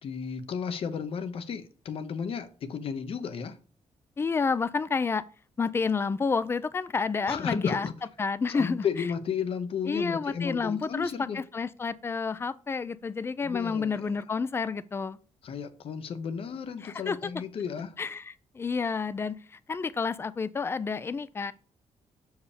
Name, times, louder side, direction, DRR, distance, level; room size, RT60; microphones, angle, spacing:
voice 1, 0.0-3.6 7.3-7.9 8.5-11.4 13.4-14.1 15.4-17.9, left 6 dB, 50° left, 0.9 m, -33 dB
voice 2, 4.2-5.2 5.6-7.9 8.2-8.9 9.9-15.2 16.8-17.3 18.0-21.5, left 5 dB, 20° left, 0.4 m, -30 dB
6.9 x 4.8 x 5.0 m
wide cardioid pair, 165°, 12 cm